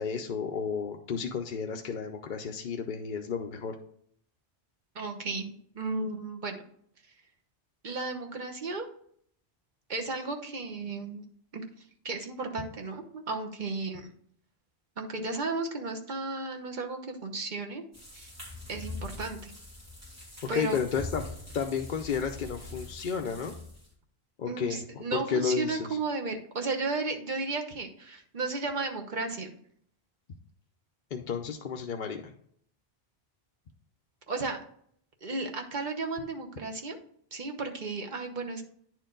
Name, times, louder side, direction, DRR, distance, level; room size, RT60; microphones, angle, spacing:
voice 1, 0.0-3.8 20.4-21.3 21.5-23.5 24.4-25.9 31.1-32.3, left 6 dB, 55° left, 3 dB, 0.7 m, -32 dB
voice 2, 4.9-6.6 7.8-8.9 9.9-11.2 11.5-14.1 15.0-17.8 18.1-18.3 18.7-19.5 20.5-20.8 24.4-29.6 34.3-34.6 35.2-37.0 37.3-38.6, right 3 dB, 50° right, 3 dB, 1.1 m, -34 dB
sound 1, 17.9-23.9, left 2 dB, 15° right, 2.7 m, -43 dB
9.8 x 4.6 x 3.8 m, 0.63 s
omnidirectional pair, 1.1 m